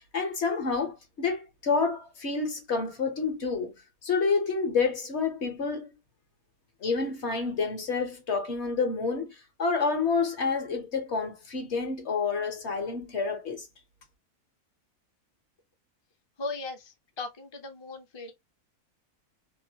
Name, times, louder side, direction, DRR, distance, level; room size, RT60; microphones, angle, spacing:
voice 1, 0.1-3.7 4.0-5.9 6.8-13.7, left 4 dB, 55° left, 1.2 m, -29 dB
voice 2, 16.4-18.3, left 3 dB, 25° left, 0.6 m, -38 dB
3.0 x 2.6 x 2.7 m
omnidirectional pair, 1.5 m